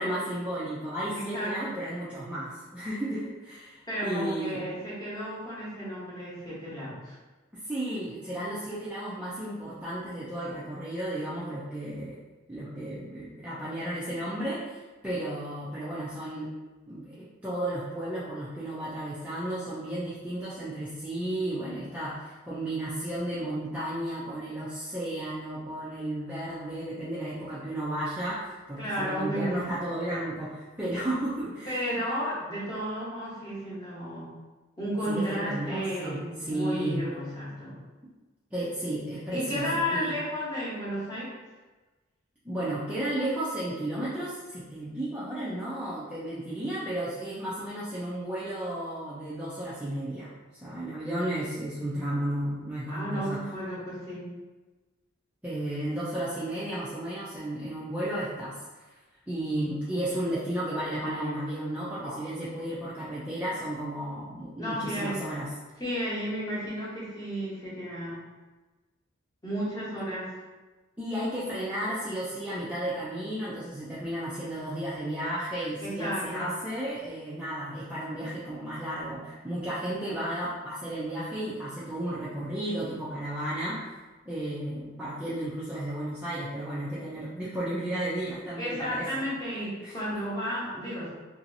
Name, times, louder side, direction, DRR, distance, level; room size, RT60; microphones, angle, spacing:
voice 1, 0.0-4.6 7.5-12.2 12.5-16.5 16.9-32.0 35.1-37.0 38.5-40.1 42.4-53.4 55.4-58.6 59.3-65.5 71.0-83.9 84.3-89.2 89.8-90.0, right 1 dB, 5° right, -11 dB, 0.4 m, -33 dB
voice 2, 1.1-1.7 3.9-7.2 28.8-29.7 31.7-34.3 34.8-37.8 39.3-41.3 52.9-54.3 61.0-61.3 62.0-62.2 64.6-65.2 65.8-68.2 69.4-70.3 75.8-76.5 88.6-91.1, equal, 20° left, -9 dB, 1.0 m, -33 dB
3.0 x 2.7 x 2.7 m, 1.2 s
head